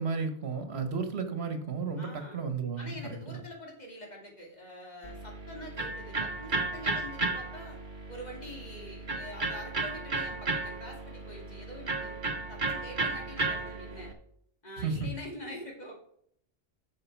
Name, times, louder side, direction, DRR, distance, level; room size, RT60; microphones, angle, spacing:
voice 1, 0.0-3.4 14.8-15.1, right 5 dB, 85° right, 7 dB, 1.5 m, -33 dB
voice 2, 2.0-2.4 2.8-7.8 8.1-12.1 12.5-14.1 14.6-15.9, left 1 dB, 45° left, -1 dB, 2.5 m, -45 dB
Electric guitar, 5.0-14.1, right 3 dB, 50° right, 1.4 m, -34 dB
11.0 x 6.4 x 4.6 m, 0.69 s
omnidirectional pair, 1.1 m